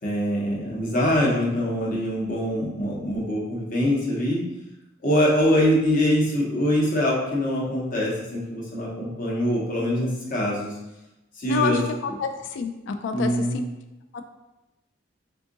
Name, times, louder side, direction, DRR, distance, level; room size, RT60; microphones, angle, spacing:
voice 1, 0.0-4.4 5.0-10.8 11.4-11.8 13.1-13.6, equal, 45° left, -4 dB, 0.9 m, -23 dB
voice 2, 12.2-13.6 14.1-14.2, left 5 dB, 65° left, 6 dB, 0.3 m, -27 dB
3.6 x 2.5 x 3.8 m, 0.98 s
head